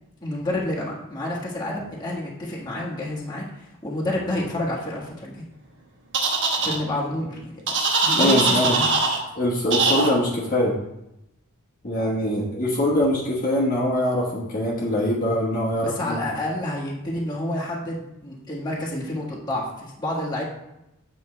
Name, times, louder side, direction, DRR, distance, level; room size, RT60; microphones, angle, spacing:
voice 1, 0.2-5.4 6.6-7.5 8.0-8.9 15.7-20.4, left 1 dB, 20° left, -5 dB, 1.4 m, -29 dB
sound 1, 6.1-6.8 7.7-9.2 9.7-10.1, right 3 dB, 55° right, 1.1 m, -21 dB
voice 2, 8.2-8.7 9.3-10.7 11.8-16.2, left 1 dB, 35° left, -6 dB, 1.2 m, -23 dB
8.2 x 5.3 x 3.3 m, 0.88 s
head